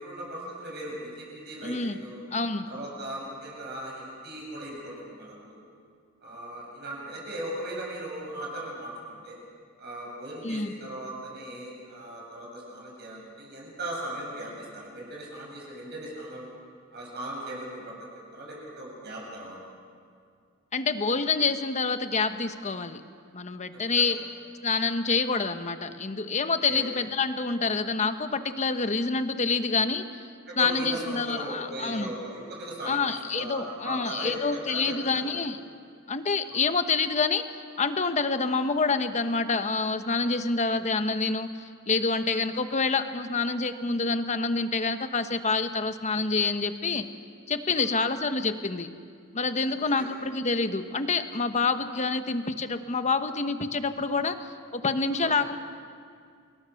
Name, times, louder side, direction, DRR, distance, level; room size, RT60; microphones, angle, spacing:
voice 1, 0.0-2.2 2.7-5.6 6.2-9.4 9.8-16.5 16.9-17.9 18.3-19.6 24.0-24.1 26.6-26.8 30.5-33.0 33.3-35.3 36.5-36.6 47.7-47.9 55.1-55.4, right 1 dB, 50° right, -3 dB, 7.8 m, -38 dB
voice 2, 1.6-2.0 2.3-2.7 10.4-10.7 20.7-23.0 23.3-24.2 24.6-30.0 30.6-32.1 32.8-35.6 36.1-47.1 47.5-48.9 49.3-54.4 54.7-55.6, left 4 dB, 35° left, 9 dB, 1.1 m, -27 dB
29.5 x 21.5 x 6.5 m, 2.2 s
head